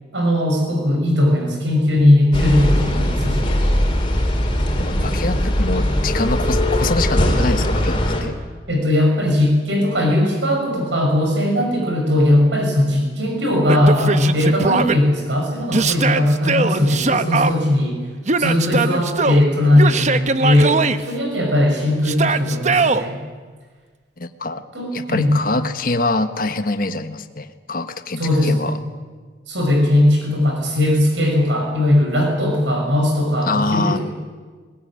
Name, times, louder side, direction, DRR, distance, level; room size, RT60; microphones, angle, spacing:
voice 1, 0.1-3.6 8.7-18.0 18.4-20.8 21.1-23.2 24.7-25.3 28.2-28.6 29.5-34.0, left 1 dB, 85° right, 2 dB, 6.1 m, -18 dB
sound 1, 2.3-8.2, equal, 30° left, 4.0 m, -20 dB
voice 2, 4.8-8.3 24.2-24.6 24.9-28.8 33.5-34.0, left 2 dB, 50° left, 9 dB, 1.3 m, -24 dB
Yell, 13.7-15.0 15.7-17.5 18.3-19.4 19.8-21.0 22.0-23.0, right 4 dB, 40° right, 0.9 m, -20 dB
21.0 x 19.5 x 9.9 m, 1.5 s
head